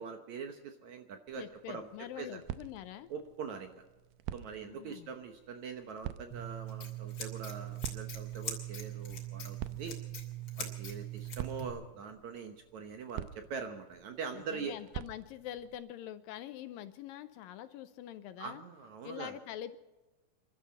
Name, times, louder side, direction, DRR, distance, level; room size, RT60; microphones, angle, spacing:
voice 1, 0.0-1.9 2.2-2.4 3.1-3.8 4.3-10.0 10.6-14.8 18.4-19.3, right 6 dB, 65° right, 6 dB, 2.0 m, -43 dB
sound 1, 1.3-15.8, right 12 dB, 90° right, 2.6 m, -48 dB
voice 2, 1.4-3.1 4.6-5.1 14.3-18.6 19.0-19.8, left 11 dB, 80° left, 11 dB, 2.2 m, -45 dB
Scissors, 6.3-11.7, right 6 dB, 40° left, 3.3 m, -41 dB
28.0 x 12.5 x 4.1 m, 1.1 s
omnidirectional pair, 4.4 m